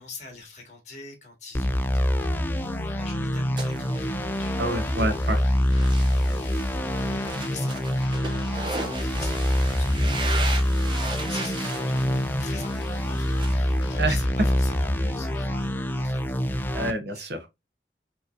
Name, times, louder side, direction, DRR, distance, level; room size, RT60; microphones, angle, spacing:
voice 1, 0.0-5.0 5.2-16.8 17.1-17.3, left 3 dB, 40° left, 1.9 m, -45 dB
sound 1, 1.5-16.9, equal, 10° left, 0.3 m, -25 dB
sound 2, 2.2-16.0, left 2 dB, 85° left, 0.6 m, -42 dB
sound 3, 3.6-13.5, right 3 dB, 25° right, 0.8 m, -37 dB
voice 2, 4.6-5.4 14.0-14.1 16.7-17.5, right 1 dB, 70° right, 0.9 m, -27 dB
4.9 x 3.1 x 2.5 m
head